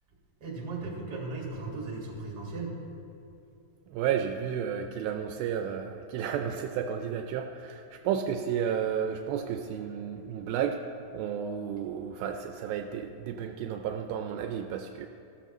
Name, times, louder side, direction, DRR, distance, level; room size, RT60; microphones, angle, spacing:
voice 1, 0.4-2.8, right 3 dB, 35° right, -2 dB, 1.9 m, -36 dB
voice 2, 3.9-10.8 11.1-15.1, right 8 dB, 80° right, 5 dB, 2.3 m, -32 dB
14.5 x 13.0 x 3.1 m, 2.7 s
omnidirectional pair, 4.3 m